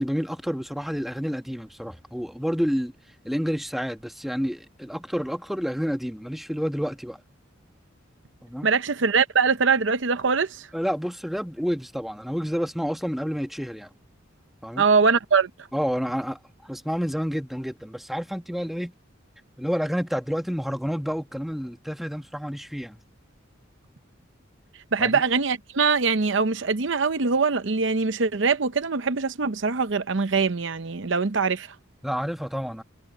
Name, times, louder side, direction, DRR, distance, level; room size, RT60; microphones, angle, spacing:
voice 1, 0.0-2.9 3.2-7.2 8.4-8.7 10.7-13.9 14.6-14.8 15.7-18.9 19.6-23.0 25.0-25.2 32.0-32.8, equal, ahead, 1.5 m, -29 dB
voice 2, 8.6-10.7 14.8-15.5 24.9-31.7, right 5 dB, 65° right, 0.8 m, -22 dB
head